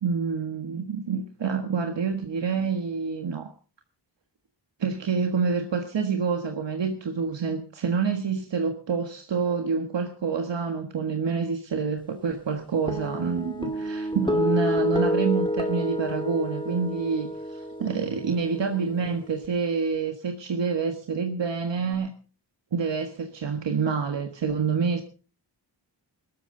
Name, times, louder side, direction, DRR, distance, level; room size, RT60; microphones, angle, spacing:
voice 1, 0.0-3.5 4.8-22.1 22.7-25.0, right 5 dB, 80° right, 5 dB, 1.6 m, -27 dB
sound 1, 12.9-19.5, left 1 dB, 10° left, 2.5 m, -29 dB
20.5 x 13.5 x 3.9 m, 0.36 s
wide cardioid pair, 115°, 43 cm